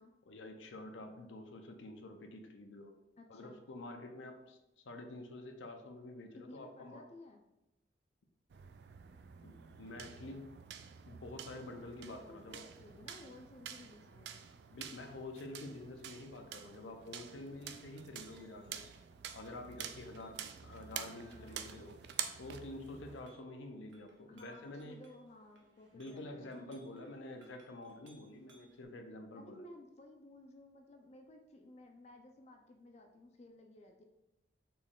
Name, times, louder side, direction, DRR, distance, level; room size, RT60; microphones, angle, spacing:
voice 1, 0.3-2.9 3.3-4.6 4.8-7.1 9.4-10.4 11.0-12.6 14.7-18.8 19.3-22.0 22.4-25.0 25.9-29.7, left 2 dB, 85° left, 5 dB, 0.6 m, -48 dB
voice 2, 3.2-3.6 6.3-7.4 12.0-14.4 21.0-22.0 24.3-26.8 29.3-34.0, left 1 dB, 35° left, 4 dB, 0.3 m, -56 dB
sound 1, 8.5-23.3, right 9 dB, 60° right, 0.3 m, -48 dB
Chink clink, 17.5-28.8, right 2 dB, 80° right, 0.9 m, -68 dB
4.3 x 3.0 x 3.6 m, 0.96 s
head